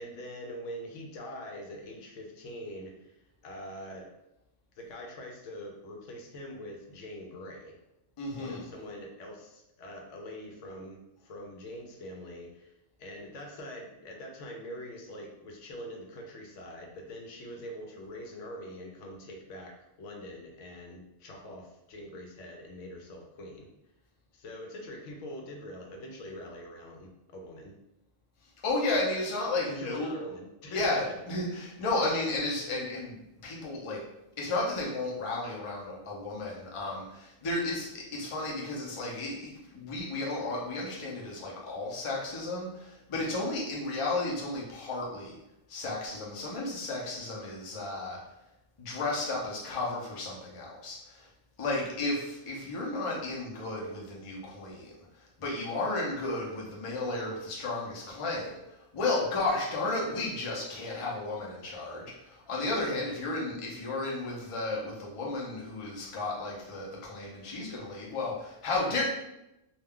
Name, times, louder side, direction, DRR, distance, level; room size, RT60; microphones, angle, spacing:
voice 1, 0.0-4.1 4.8-7.8 8.4-23.7 24.3-27.7 29.6-31.1, equal, 75° left, 1 dB, 0.9 m, -44 dB
voice 2, 8.2-8.7 28.6-30.1 30.7-34.0 34.4-45.4 45.7-48.2 48.8-51.3 51.6-69.0, left 2 dB, 35° left, -3 dB, 0.5 m, -33 dB
2.4 x 2.2 x 3.5 m, 0.89 s
omnidirectional pair, 1.3 m